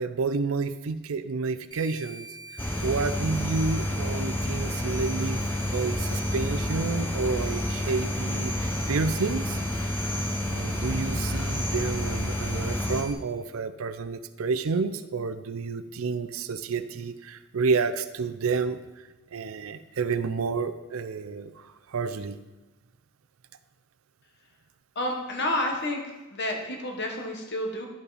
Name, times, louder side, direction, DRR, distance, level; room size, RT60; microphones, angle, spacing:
voice 1, 0.0-2.3 2.8-5.4 5.7-9.6 10.5-18.8 19.3-21.5 21.9-22.4, right 4 dB, 80° right, 11 dB, 0.5 m, -30 dB
sound 1, 1.7-13.1, right 1 dB, 20° right, 0.9 m, -43 dB
sound 2, 2.6-13.0, left 1 dB, 10° left, 0.6 m, -29 dB
voice 2, 24.9-26.0 26.3-27.9, left 1 dB, 55° left, 2 dB, 1.3 m, -29 dB
10.5 x 5.5 x 4.1 m, 1.1 s
head